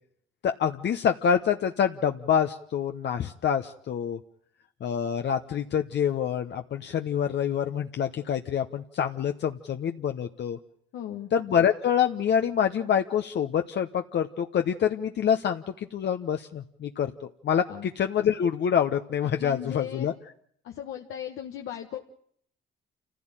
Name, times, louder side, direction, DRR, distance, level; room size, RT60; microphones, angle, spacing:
voice 1, 0.4-4.2 4.8-10.6 11.3-15.6 15.9-17.1 17.4-20.1, left 8 dB, 60° left, 6 dB, 1.0 m, -26 dB
voice 2, 10.9-11.3 17.7-17.9 19.4-20.1 20.6-22.0, left 10 dB, 85° left, 3 dB, 1.5 m, -37 dB
27.5 x 15.5 x 9.0 m, 0.65 s
cardioid pair, 90°, 20 cm